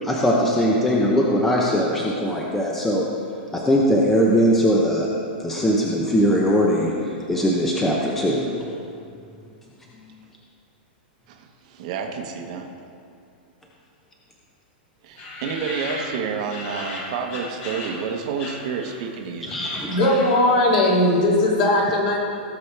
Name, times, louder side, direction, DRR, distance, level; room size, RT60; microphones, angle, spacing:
voice 1, 0.0-3.0 3.5-5.1 5.4-6.9 7.3-8.6 19.5-19.9, equal, 5° left, -3 dB, 0.7 m, -20 dB
voice 2, 11.3-12.7 15.0-19.5, right 6 dB, 40° right, 3 dB, 1.0 m, -29 dB
sound 1, 15.2-18.1 18.4-19.1 19.4-20.6, left 2 dB, 30° left, 1.4 m, -35 dB
voice 3, 19.9-22.2, left 1 dB, 50° left, -3 dB, 2.5 m, -18 dB
17.0 x 7.2 x 3.3 m, 2.4 s
supercardioid pair, 170°, 6 cm